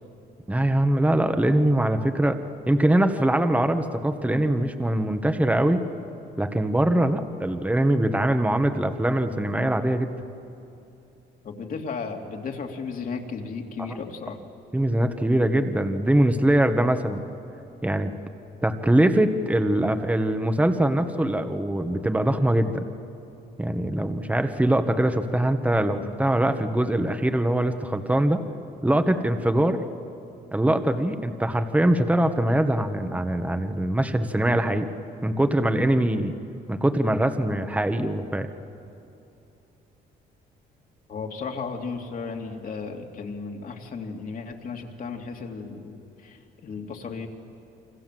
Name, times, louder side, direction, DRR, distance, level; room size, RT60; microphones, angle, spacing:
voice 1, 0.5-2.4 2.7-5.9 6.4-10.1 14.7-17.2 17.8-18.1 18.6-22.8 23.6-28.4 28.8-29.8 30.5-34.9 35.2-36.3 36.7-38.5, right 1 dB, 10° right, 8 dB, 1.5 m, -22 dB
voice 2, 11.4-14.4 41.1-47.3, left 5 dB, 50° left, 2 dB, 3.0 m, -34 dB
28.5 x 25.5 x 7.8 m, 2.8 s
cardioid pair, 95°, 18 cm